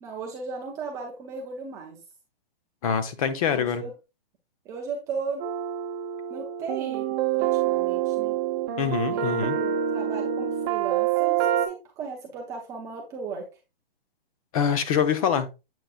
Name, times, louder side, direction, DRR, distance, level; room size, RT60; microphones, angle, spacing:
voice 1, 0.0-2.0 3.5-3.9 4.7-5.5 6.3-8.4 9.1-13.5, right 5 dB, 10° right, 0.4 m, -36 dB
voice 2, 2.8-3.8 8.8-9.6 14.5-15.5, left 7 dB, 35° left, 0.8 m, -24 dB
sound 1, 5.4-11.7, right 10 dB, 25° right, 0.8 m, -26 dB
7.7 x 5.2 x 2.4 m
hypercardioid pair, 150°, 30 cm